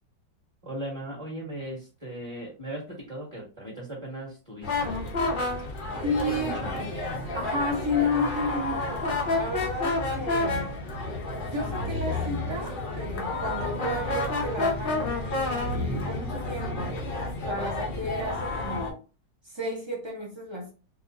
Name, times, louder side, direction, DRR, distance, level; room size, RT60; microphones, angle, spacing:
voice 1, 0.6-4.9 6.1-6.9, right 1 dB, 15° right, 1.4 m, -37 dB
sound 1, 4.6-18.9, left 2 dB, 70° left, 0.4 m, -30 dB
voice 2, 6.0-6.6 7.3-9.0 9.3-10.8 11.4-17.0 17.5-19.0 19.4-20.7, left 1 dB, 45° right, 0.3 m, -32 dB
4.2 x 2.4 x 2.6 m
omnidirectional pair, 2.0 m